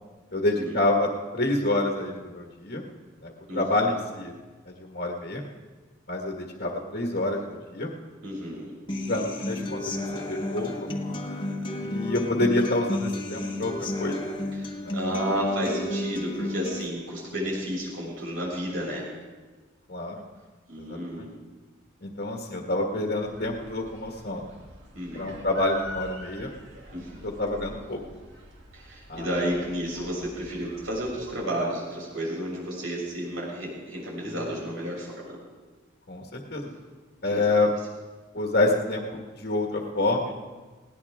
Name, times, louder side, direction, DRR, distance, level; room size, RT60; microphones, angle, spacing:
voice 1, 0.3-2.8 3.2-4.3 4.7-5.4 6.1-7.9 9.1-10.9 11.8-13.7 14.0-14.2 14.8-15.2 15.6-15.8 19.9-20.2 20.8-21.3 22.0-24.5 25.1-26.5 27.0-28.0 29.1-29.5 34.2-34.4 36.1-36.7 37.2-37.7 38.3-40.4, left 2 dB, 50° left, 0 dB, 1.7 m, -28 dB
voice 2, 3.5-3.8 8.2-8.7 14.5-19.1 20.7-21.4 24.9-25.4 26.9-27.3 28.7-35.4 37.3-37.4, equal, 80° right, -4 dB, 6.9 m, -32 dB
Human voice / Acoustic guitar, 8.9-16.9, left 1 dB, 25° left, 1.5 m, -32 dB
sound 1, 23.2-31.3, equal, 60° right, 2.6 m, -45 dB
20.5 x 18.0 x 3.6 m, 1.3 s
head